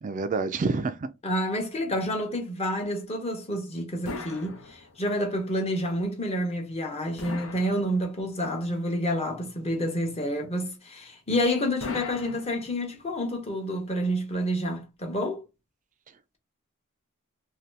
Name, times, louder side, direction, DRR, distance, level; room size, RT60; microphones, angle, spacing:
voice 1, 0.0-1.1, right 4 dB, 35° right, 0.3 m, -28 dB
voice 2, 1.2-15.4, equal, 30° left, 0.9 m, -29 dB
sound 1, 4.1-5.2 7.2-8.4 11.8-13.1, left 3 dB, 70° left, 0.7 m, -39 dB
2.7 x 2.3 x 3.2 m
head